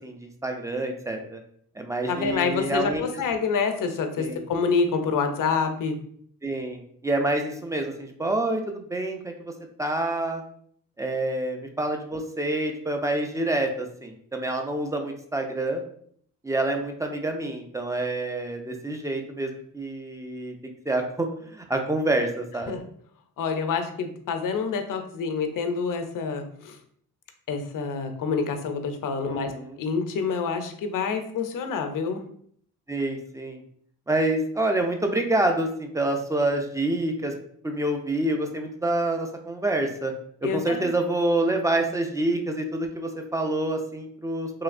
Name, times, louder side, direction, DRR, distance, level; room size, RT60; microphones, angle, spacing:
voice 1, 0.0-1.4 1.8-3.0 4.2-4.4 6.4-9.5 9.8-10.4 11.0-15.8 16.4-20.5 20.9-22.7 29.3-29.8 32.9-33.6 34.1-37.3 37.6-40.1 40.5-44.6, right 2 dB, 10° right, 4 dB, 0.5 m, -27 dB
voice 2, 2.1-6.0 22.7-22.8 23.4-26.8 27.5-32.2 40.4-40.9, left 5 dB, 65° left, 6 dB, 0.6 m, -27 dB
3.1 x 2.7 x 2.5 m, 0.63 s
cardioid pair, 70°, 35 cm